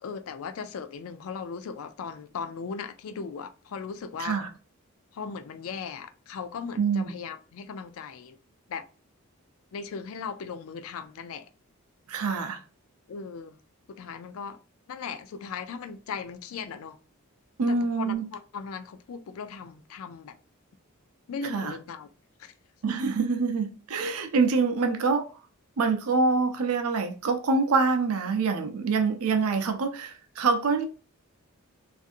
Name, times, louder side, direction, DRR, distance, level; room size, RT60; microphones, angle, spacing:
voice 1, 0.0-4.4 5.1-8.4 8.7-8.8 9.7-11.5 13.1-13.6 13.9-14.6 14.9-17.0 17.7-20.3 21.3-22.1 22.4-22.5, left 5 dB, 70° left, 0.4 m, -38 dB
voice 2, 6.8-7.1 12.1-12.6 17.6-18.2 21.5-21.7 22.8-25.3 25.8-30.9, right 4 dB, 80° right, 0.5 m, -25 dB
2.6 x 2.5 x 2.4 m
head